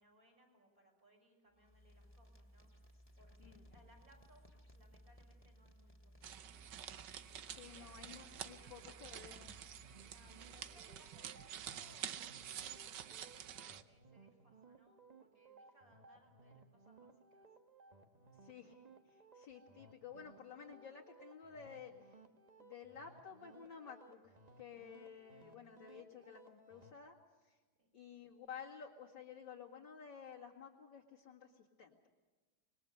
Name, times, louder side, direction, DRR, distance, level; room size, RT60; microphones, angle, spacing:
voice 1, 0.0-6.7 7.1-9.1 10.0-17.5 27.8-27.9, right 1 dB, 45° right, -1 dB, 6.8 m, -69 dB
sound 1, 1.5-10.9, equal, 5° left, 2.4 m, -62 dB
sound 2, 6.2-13.8, right 9 dB, 70° right, 1.5 m, -49 dB
voice 2, 7.6-9.6 18.4-18.8 19.1-21.9 22.6-27.2 27.4-27.6 27.9-32.1, left 7 dB, 70° left, -4 dB, 2.7 m, -53 dB
sound 3, 8.3-26.9, right 3 dB, 25° right, 1.1 m, -63 dB
26.0 x 22.0 x 6.8 m, 1.3 s
omnidirectional pair, 2.1 m